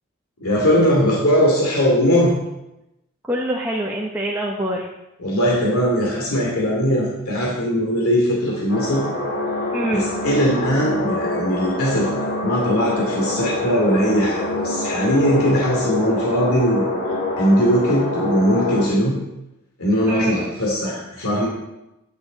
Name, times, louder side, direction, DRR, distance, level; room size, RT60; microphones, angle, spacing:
voice 1, 0.4-2.3 5.2-9.0 9.9-12.1 12.4-16.8 17.4-19.2 19.8-21.5, equal, 90° left, -3 dB, 2.6 m, -20 dB
voice 2, 3.3-4.9 9.7-10.1 20.1-20.5, equal, 10° right, -3 dB, 1.0 m, -24 dB
sound 1, 8.7-18.9, left 2 dB, 60° left, 4.1 m, -25 dB
10.0 x 9.5 x 4.1 m, 0.92 s
head